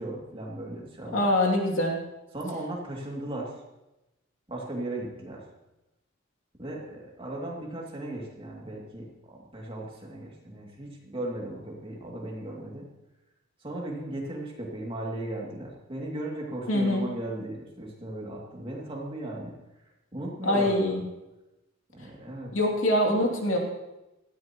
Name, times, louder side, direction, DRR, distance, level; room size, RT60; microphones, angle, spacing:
voice 1, 0.0-1.3 2.3-3.5 4.5-5.4 6.6-12.9 13.6-19.5 20.1-20.8 21.9-22.5, right 1 dB, 25° right, -2 dB, 2.5 m, -36 dB
voice 2, 1.1-2.0 16.7-17.1 20.4-21.0 22.5-23.6, left 1 dB, 70° left, 0 dB, 2.7 m, -24 dB
18.0 x 14.0 x 3.0 m, 0.98 s
head